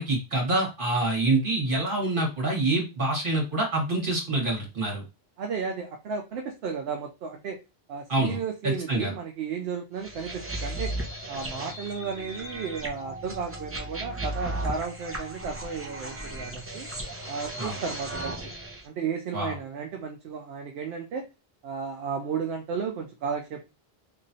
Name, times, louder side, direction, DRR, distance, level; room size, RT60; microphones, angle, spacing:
voice 1, 0.0-5.0 8.1-8.4 8.9-9.1 17.6-17.8 19.3-19.5, right 2 dB, 55° right, -1 dB, 1.7 m, -26 dB
voice 2, 5.4-7.6 7.9-10.9 11.3-16.9 17.3-18.4 18.8-21.3 21.6-23.7, right 6 dB, 75° right, 3 dB, 0.8 m, -33 dB
sound 1, 10.0-18.8, right 1 dB, 15° right, 0.6 m, -36 dB
3.3 x 3.1 x 2.6 m, 0.27 s
omnidirectional pair, 1.1 m